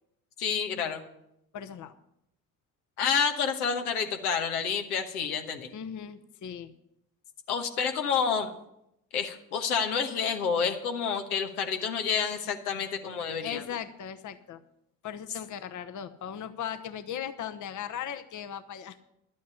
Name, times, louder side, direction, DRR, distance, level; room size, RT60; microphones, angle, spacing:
voice 1, 0.4-1.0 3.0-5.7 7.5-8.5 9.1-13.6, left 6 dB, 80° left, 6 dB, 1.2 m, -29 dB
voice 2, 1.5-1.9 5.7-6.7 13.4-14.6 15.0-19.0, left 9 dB, 40° left, 10 dB, 1.0 m, -38 dB
11.0 x 8.5 x 8.2 m, 0.79 s
hypercardioid pair, 50°, 44 cm